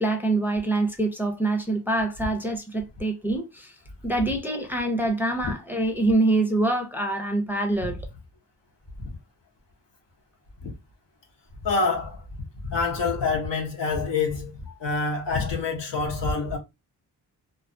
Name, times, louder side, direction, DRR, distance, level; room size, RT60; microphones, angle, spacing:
voice 1, 0.0-3.7 4.0-8.0, right 2 dB, 5° right, 0.5 m, -25 dB
voice 2, 11.6-12.2 12.6-14.5 14.8-16.6, left 4 dB, 85° left, 1.0 m, -26 dB
2.4 x 2.3 x 2.5 m
cardioid pair, 80°, 41 cm